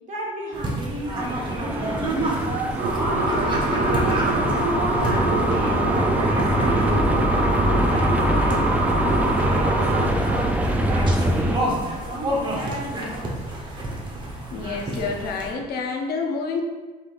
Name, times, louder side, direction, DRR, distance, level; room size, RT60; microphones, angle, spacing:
voice 1, 0.1-2.8 3.1-7.4 7.7-10.6 10.8-13.3, right 1 dB, 45° right, -3 dB, 1.3 m, -34 dB
sound 1, 0.5-15.5, right 1 dB, 30° right, 1.0 m, -30 dB
sound 2, 1.2-11.6, right 1 dB, 10° right, 0.4 m, -24 dB
sound 3, 2.8-10.1, right 2 dB, 75° right, 0.7 m, -24 dB
voice 2, 14.5-16.6, left 4 dB, 70° left, 1 dB, 0.7 m, -28 dB
5.5 x 3.2 x 2.5 m, 1.3 s
cardioid pair, 110°, 17 cm